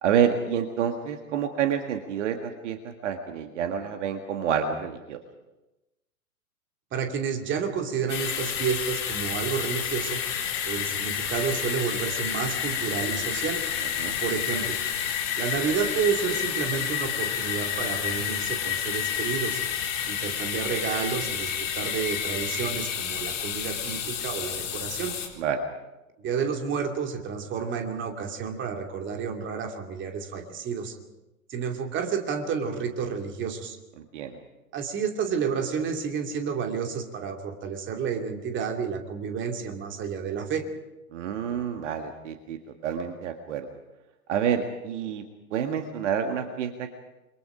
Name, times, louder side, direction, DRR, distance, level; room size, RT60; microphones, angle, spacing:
voice 1, 0.0-5.2 14.0-14.2 25.4-25.6 34.0-34.4 41.1-43.7 44.3-45.2 45.5-46.9, right 8 dB, 55° right, 6 dB, 1.9 m, -28 dB
voice 2, 6.9-10.2 10.7-13.6 14.2-14.7 15.4-19.6 20.1-25.2 26.2-30.9 31.5-33.8 34.7-40.6, right 6 dB, 25° right, 4 dB, 2.7 m, -30 dB
sound 1, 8.1-25.3, left 9 dB, 55° left, 4.1 m, -30 dB
29.0 x 23.0 x 5.0 m, 1.0 s
figure-of-eight pair, 100°, 44 cm